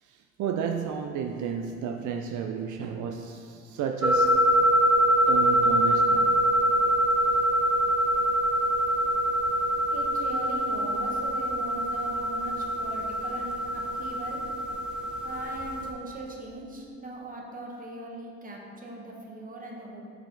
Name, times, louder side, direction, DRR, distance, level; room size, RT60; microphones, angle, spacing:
voice 1, 0.0-4.7 5.0-6.4 7.0-7.1, right 7 dB, 75° right, 5 dB, 0.4 m, -33 dB
sound 1, 4.0-15.9, equal, 5° right, 0.6 m, -24 dB
voice 2, 9.9-14.4 15.2-20.0, right 2 dB, 30° right, -1 dB, 1.1 m, -40 dB
6.8 x 4.3 x 3.9 m, 2.4 s
cardioid pair, 90°, 30 cm